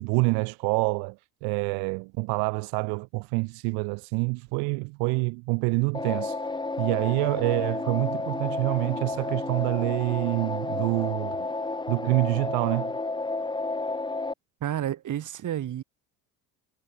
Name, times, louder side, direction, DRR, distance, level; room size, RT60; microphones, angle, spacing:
voice 1, 0.0-11.5 11.9-13.0, right 33 dB, 75° right, 1.0 m, -27 dB
sound 1, 5.9-14.3, left 3 dB, 10° left, 1.7 m, -31 dB
voice 2, 14.6-15.8, right 11 dB, 50° right, 3.6 m, -30 dB
supercardioid pair, 90°, 40 cm